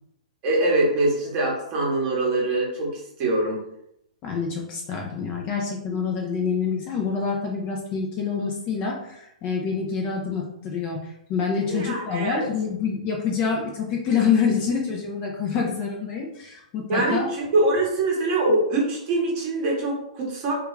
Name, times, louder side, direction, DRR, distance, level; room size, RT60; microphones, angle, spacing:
voice 1, 0.4-3.6 11.7-12.4 16.9-20.5, right 2 dB, 30° right, -3 dB, 0.9 m, -23 dB
voice 2, 4.2-11.0 11.3-17.3, left 6 dB, 25° left, 0 dB, 0.4 m, -26 dB
2.3 x 2.2 x 3.1 m, 0.77 s
hypercardioid pair, 155°, 4 cm